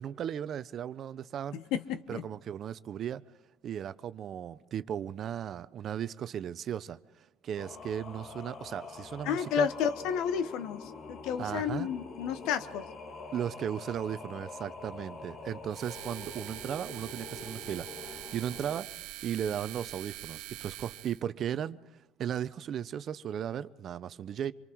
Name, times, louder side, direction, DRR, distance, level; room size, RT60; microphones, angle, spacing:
voice 1, 0.0-1.6 2.1-3.2 3.6-9.7 11.4-11.9 13.3-21.8 22.2-24.5, right 9 dB, 50° right, 0.7 m, -36 dB
voice 2, 1.5-2.3 9.2-12.9, left 8 dB, 75° left, 1.3 m, -32 dB
Singing, 7.6-18.8, left 4 dB, 50° left, 1.8 m, -45 dB
sound 1, 15.7-21.2, right 16 dB, 85° right, 0.8 m, -44 dB
26.0 x 23.5 x 4.7 m
supercardioid pair, 95°, 0 cm